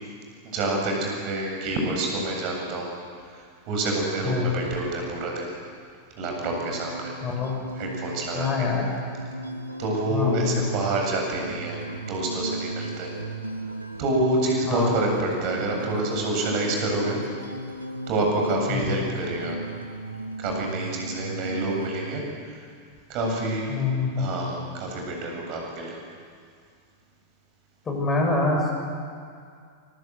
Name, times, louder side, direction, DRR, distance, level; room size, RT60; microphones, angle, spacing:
voice 1, 0.4-2.9 3.7-5.4 6.2-7.1 7.8-8.7 9.8-11.8 12.1-13.1 14.0-17.2 18.1-19.6 20.4-22.2 23.1-23.8 24.2-26.0, right 2 dB, 40° right, 0 dB, 8.0 m, -27 dB
sound 1, 6.2-22.2, right 2 dB, 85° right, 1.5 m, -36 dB
voice 2, 7.2-7.6 8.3-8.8 10.1-10.7 14.7-14.9 18.7-18.9 23.7-24.3 27.9-28.7, left 4 dB, 20° left, 0 dB, 7.4 m, -25 dB
26.0 x 25.5 x 8.1 m, 2.2 s
figure-of-eight pair, 90°, 0 cm